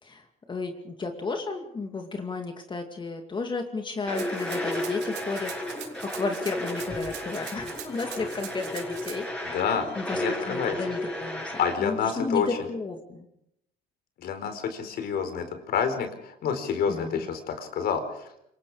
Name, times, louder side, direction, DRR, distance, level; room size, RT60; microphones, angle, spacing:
voice 1, 0.0-5.5 6.0-9.6 9.9-11.5 11.8-13.3 16.9-17.3, left 3 dB, 30° left, 4 dB, 2.5 m, -33 dB
sound 1, 4.1-11.8, left 1 dB, 5° left, 7.9 m, -33 dB
Rattle (instrument), 4.2-9.2, right 12 dB, 85° right, 3.4 m, -42 dB
voice 2, 9.4-10.8 11.6-12.5 14.2-18.3, left 7 dB, 65° left, 7 dB, 4.4 m, -28 dB
26.0 x 24.0 x 5.0 m, 0.78 s
cardioid pair, 110°, 17 cm